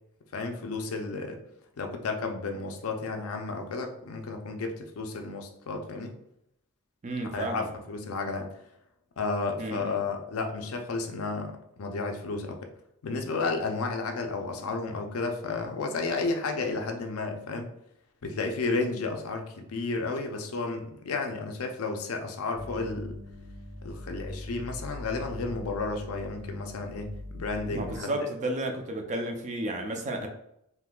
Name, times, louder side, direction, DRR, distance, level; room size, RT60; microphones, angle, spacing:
voice 1, 0.3-1.4 1.8-6.1 7.3-8.5 9.2-12.6 13.0-17.7 18.2-23.2 23.8-28.1 30.1-30.3, left 3 dB, 70° left, 4 dB, 0.5 m, -32 dB
voice 2, 7.0-7.7 9.6-10.0 27.7-30.3, right 1 dB, 30° right, 4 dB, 0.4 m, -32 dB
sound 1, 22.5-28.0, left 1 dB, 55° right, 1.5 m, -41 dB
3.6 x 2.7 x 2.3 m, 0.78 s
head